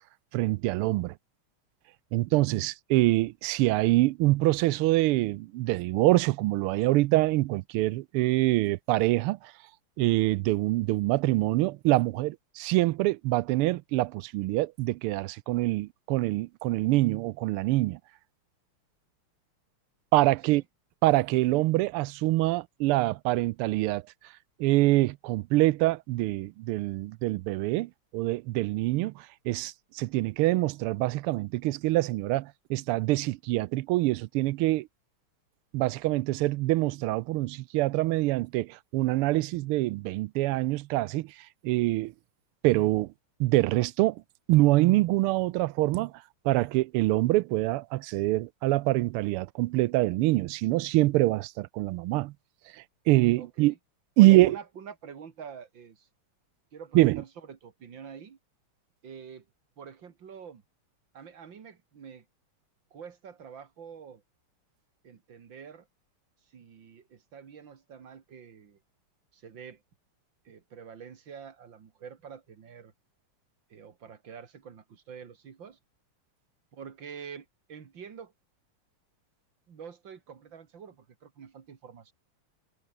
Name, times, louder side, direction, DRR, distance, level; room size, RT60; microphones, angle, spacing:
voice 1, 0.3-1.1 2.1-9.5 10.0-18.0 20.1-20.6 21.0-24.0 24.6-34.9 35.7-41.3 41.6-42.1 42.6-43.1 43.4-44.2 44.5-46.1 46.4-52.3 52.7-53.7 54.2-54.6 56.9-57.2, right 18 dB, 85° right, 1.5 m, -25 dB
voice 2, 53.4-53.8 54.2-56.1 56.7-58.4 59.0-59.5 59.8-60.6 61.1-62.3 62.9-64.2 65.0-65.9 66.5-68.8 69.3-69.8 70.4-72.9 73.7-75.8 76.7-78.3 79.7-82.1, right 7 dB, 60° right, 2.6 m, -46 dB
omnidirectional pair, 2.4 m